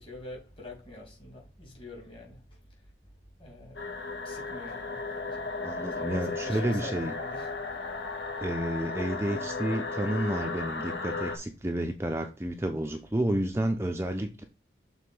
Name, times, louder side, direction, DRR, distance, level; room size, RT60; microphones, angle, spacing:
voice 1, 0.0-2.4 3.4-3.8 4.2-5.5 5.9-7.5, left 1 dB, 30° left, 2.5 m, -45 dB
sound 1, 3.8-11.4, left 3 dB, 75° left, 1.4 m, -35 dB
voice 2, 5.6-7.1 8.4-14.4, right 1 dB, 15° right, 0.5 m, -30 dB
6.6 x 3.7 x 5.3 m
head